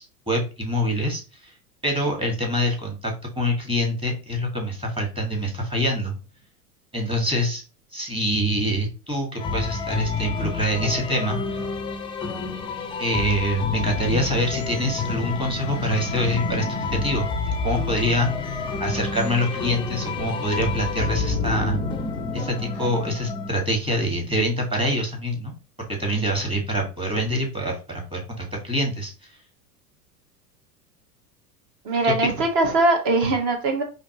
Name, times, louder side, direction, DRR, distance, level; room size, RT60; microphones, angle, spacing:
voice 1, 0.0-1.5 1.8-6.1 6.9-7.6 7.9-11.6 13.0-17.3 17.6-21.8 22.3-29.3 32.0-32.3, equal, 10° right, 1 dB, 1.6 m, -25 dB
sound 1, 9.4-23.5, left 5 dB, 10° left, 0.4 m, -29 dB
sound 2, 13.6-22.9, equal, 90° right, 1.4 m, -34 dB
voice 2, 31.8-33.8, right 2 dB, 45° right, 4 dB, 1.4 m, -21 dB
5.0 x 2.9 x 2.9 m, 0.32 s
figure-of-eight pair, 90°, 46 cm